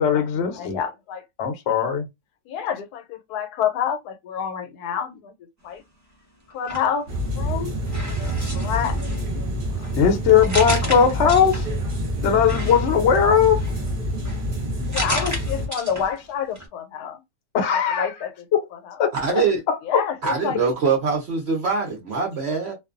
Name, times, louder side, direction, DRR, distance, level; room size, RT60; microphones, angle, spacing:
voice 1, 0.0-0.8 1.4-2.0 10.0-11.7 12.2-13.6 17.5-18.1 18.5-18.6 19.0-20.0, left 7 dB, 60° left, 0.8 m, -19 dB
voice 2, 0.6-1.2 2.5-5.3 5.6-5.8 6.5-7.1 7.3-7.8 8.2-9.0 9.3-9.9 11.2-11.3 14.9-17.2 18.0-18.4 18.9-19.0 19.8-20.6, left 8 dB, 80° left, 1.1 m, -28 dB
sound 1, 6.5-7.5 7.8-11.9 12.4-16.3 16.5-16.7, equal, 20° right, 0.4 m, -33 dB
sound 2, 7.1-15.7, equal, 40° right, 0.9 m, -27 dB
voice 3, 19.1-19.6 20.2-22.7, right 5 dB, 65° right, 0.7 m, -23 dB
2.5 x 2.2 x 2.4 m
omnidirectional pair, 1.7 m